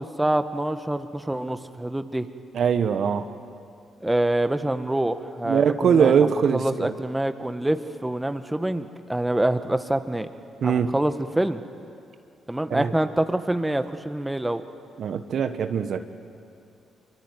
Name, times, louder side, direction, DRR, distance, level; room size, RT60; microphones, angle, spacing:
voice 1, 0.0-2.3 4.0-10.3 10.6-11.6 12.5-14.6, right 1 dB, 10° right, 9 dB, 1.7 m, -26 dB
voice 2, 2.5-3.3 5.4-6.9 10.6-10.9 12.7-12.9 15.0-16.0, right 7 dB, 60° right, 9 dB, 1.3 m, -22 dB
26.0 x 23.5 x 9.5 m, 2.5 s
hypercardioid pair, 50°, 0 cm